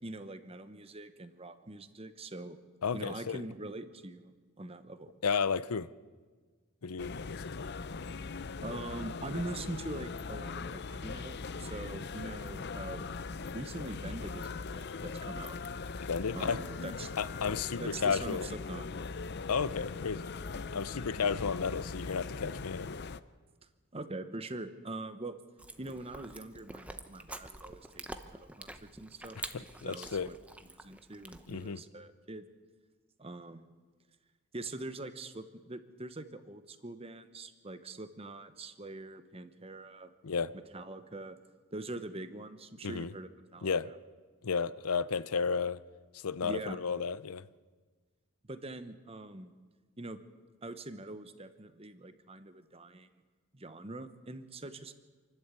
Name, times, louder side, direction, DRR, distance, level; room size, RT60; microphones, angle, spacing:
voice 1, 0.0-2.6 2.9-4.3 4.6-5.1 8.6-15.6 16.3-17.1 17.8-18.9 23.9-25.4 25.8-29.4 29.8-30.4 30.7-32.5 33.2-33.7 34.5-40.1 40.5-41.4 41.7-44.0 46.4-46.8 48.5-49.5 50.0-50.2 50.6-53.1 53.5-54.9, right 2 dB, 25° right, 1.0 m, -43 dB
voice 2, 2.8-3.4 5.2-5.9 6.8-7.7 16.0-16.6 17.2-18.5 19.5-20.4 20.7-22.9 29.5-30.3 31.5-31.8 40.2-40.5 42.8-43.1 43.6-43.9 44.4-45.8 46.1-47.5, left 5 dB, 85° left, 0.6 m, -33 dB
sound 1, 7.0-23.2, left 4 dB, 50° left, 0.6 m, -40 dB
Chewing mastication, 25.6-31.7, right 1 dB, 5° right, 0.9 m, -47 dB
27.5 x 12.0 x 8.4 m
head